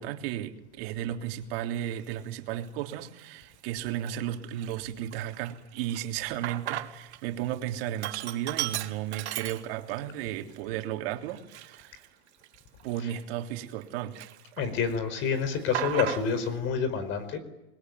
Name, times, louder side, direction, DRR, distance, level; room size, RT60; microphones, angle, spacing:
voice 1, 0.0-12.1 12.8-14.2, right 11 dB, 60° right, 4 dB, 3.4 m, -34 dB
Sink (filling or washing), 1.9-2.1 2.7-3.3 3.7-3.8 4.1-7.2 7.5-10.1 10.5-10.6 11.3-13.8 14.1-14.9 15.2-16.5, right 14 dB, 85° right, 2.3 m, -37 dB
voice 2, 14.6-17.4, left 6 dB, 35° left, 12 dB, 4.8 m, -28 dB
28.5 x 22.0 x 9.5 m, 0.95 s
supercardioid pair, 150°, 33 cm